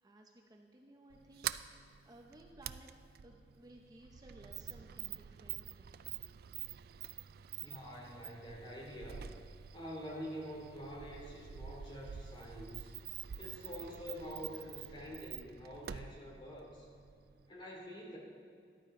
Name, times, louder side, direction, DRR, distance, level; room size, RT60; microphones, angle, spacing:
voice 1, 0.0-2.9 3.2-6.0, right 1 dB, 20° right, 2 dB, 0.7 m, -59 dB
Sliding door, 1.1-17.5, right 10 dB, 60° right, 0.3 m, -47 dB
voice 2, 7.6-9.2 9.7-12.9 13.4-16.9 17.5-18.2, equal, 30° left, -3 dB, 2.7 m, -46 dB
13.5 x 12.0 x 3.8 m, 2.2 s
head